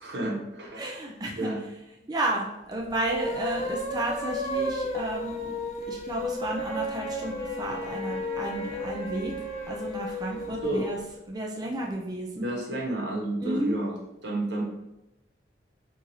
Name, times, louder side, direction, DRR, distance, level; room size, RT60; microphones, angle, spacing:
voice 1, 0.0-0.8 1.4-1.6 10.6-10.8 12.3-13.9 14.2-14.6, right 1 dB, 85° right, -2 dB, 1.1 m, -30 dB
voice 2, 0.8-1.5 2.1-11.0 11.3-12.5 13.4-13.8, right 1 dB, 25° right, -1 dB, 0.4 m, -32 dB
sound 1, 2.8-11.0, left 1 dB, 40° left, 0.6 m, -33 dB
Wind instrument woodwind instrument, 6.5-10.9, left 1 dB, 85° left, 0.9 m, -42 dB
3.9 x 2.5 x 3.0 m, 0.92 s
head